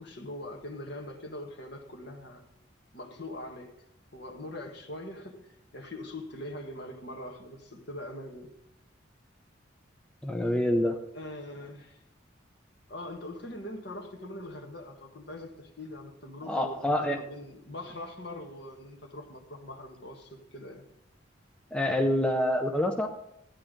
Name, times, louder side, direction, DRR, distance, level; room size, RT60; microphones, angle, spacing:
voice 1, 0.0-2.4 2.9-3.7 4.1-8.5 11.1-12.0 12.9-20.8, left 1 dB, 60° left, 3 dB, 1.6 m, -42 dB
voice 2, 10.2-11.0 16.5-17.2 21.7-23.1, left 1 dB, 5° left, 3 dB, 0.6 m, -26 dB
13.0 x 9.9 x 3.8 m, 0.78 s
head